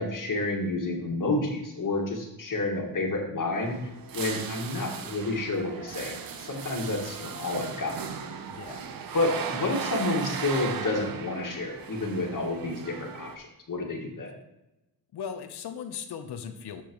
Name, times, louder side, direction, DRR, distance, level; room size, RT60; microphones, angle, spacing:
voice 1, 0.0-3.8 4.1-8.0 9.1-14.3, left 2 dB, 45° left, 1 dB, 2.0 m, -30 dB
sound 1, 3.5-13.4, right 6 dB, 55° right, 0.9 m, -37 dB
voice 2, 8.5-8.9 15.1-16.8, left 7 dB, 65° left, 8 dB, 1.0 m, -38 dB
12.0 x 4.5 x 3.1 m, 0.93 s
supercardioid pair, 50°, 43 cm